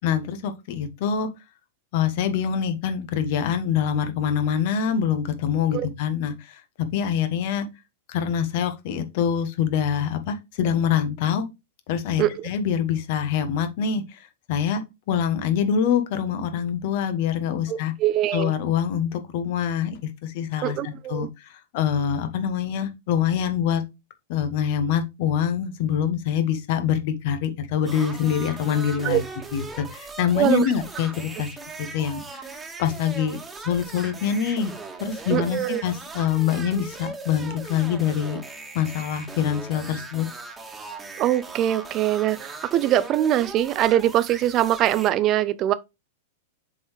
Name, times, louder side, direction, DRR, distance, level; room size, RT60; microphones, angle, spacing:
voice 1, 0.0-1.3 1.9-6.6 6.9-7.7 8.1-11.5 11.9-14.8 15.1-17.9 18.3-23.8 24.3-29.2 29.5-31.5 31.8-32.4 32.8-34.7 35.0-38.4 38.7-40.3, left 8 dB, 55° left, 1.4 m, -25 dB
voice 2, 17.7-18.5 20.6-21.3 29.0-29.2 30.4-30.6 35.3-35.8 41.2-45.7, right 12 dB, 35° right, 0.7 m, -22 dB
sound 1, 27.9-45.1, right 3 dB, 15° right, 1.6 m, -39 dB
7.3 x 4.5 x 3.3 m
figure-of-eight pair, 95°, 0 cm